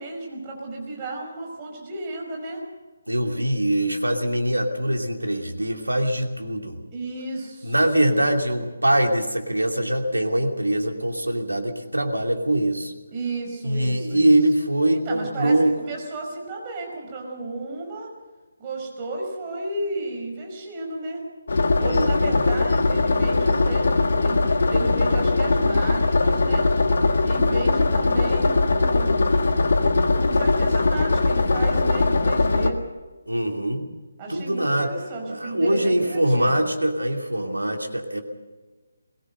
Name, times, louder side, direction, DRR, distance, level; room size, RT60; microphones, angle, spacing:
voice 1, 0.0-2.6 6.9-7.8 8.1-8.3 13.1-14.4 14.9-18.1 18.6-21.2 21.8-23.9 24.2-24.4 24.7-26.7 27.2-29.4 30.2-32.8 34.2-36.7, right 2 dB, 20° right, -1 dB, 5.4 m, -33 dB
voice 2, 3.1-6.8 7.6-12.9 13.6-15.8 21.7-22.4 33.3-33.9 34.3-34.9 35.3-38.2, right 1 dB, 75° right, 4 dB, 2.7 m, -23 dB
sound 1, 21.5-32.7, left 3 dB, 50° left, 1.6 m, -20 dB
21.5 x 18.5 x 6.7 m, 1.3 s
figure-of-eight pair, 150°, 0 cm